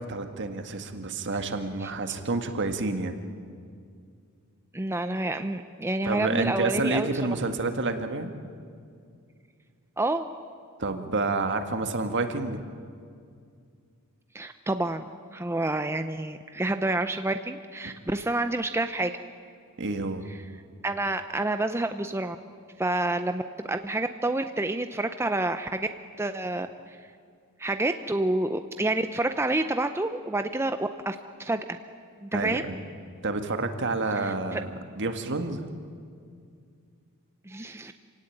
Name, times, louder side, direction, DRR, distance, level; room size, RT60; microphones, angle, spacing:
voice 1, 0.0-3.1 6.0-8.3 10.8-12.6 19.8-20.2 32.3-32.8 33.2-35.7, right 3 dB, 55° right, 7 dB, 1.8 m, -29 dB
voice 2, 4.7-7.1 10.0-10.3 14.3-15.0 15.3-19.1 20.8-22.4 22.8-25.9 26.2-27.0 27.6-31.8 32.2-32.6 34.2-34.6 37.5-37.9, right 2 dB, 10° right, 8 dB, 0.6 m, -28 dB
27.0 x 17.5 x 9.1 m, 2.3 s
head